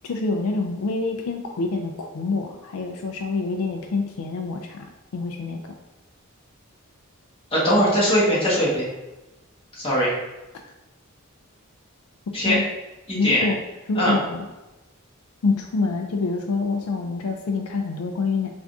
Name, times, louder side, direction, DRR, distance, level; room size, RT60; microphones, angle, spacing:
voice 1, 0.0-4.9 5.1-5.7 12.4-12.6 13.1-13.6 13.9-14.4 15.4-18.5, left 3 dB, 80° left, 3 dB, 0.4 m, -26 dB
voice 2, 7.5-8.8 9.7-10.2 12.3-12.6 13.1-13.5 13.9-14.2, equal, 25° left, -6 dB, 1.2 m, -20 dB
3.6 x 2.5 x 3.5 m, 1.0 s
head